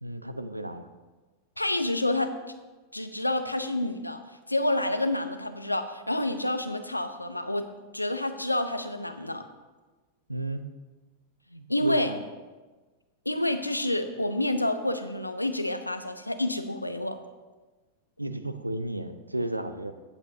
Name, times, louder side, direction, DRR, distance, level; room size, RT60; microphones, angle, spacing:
voice 1, 0.0-0.9 10.3-10.6 11.5-12.2 18.2-19.9, right 1 dB, 85° right, 10 dB, 0.6 m, -33 dB
voice 2, 1.6-2.3 2.9-4.2 4.5-7.7 7.9-9.4 11.7-12.1 13.3-17.2, left 1 dB, 85° left, 9 dB, 0.7 m, -28 dB
15.0 x 8.2 x 2.8 m, 1.3 s
figure-of-eight pair, 90°, 0 cm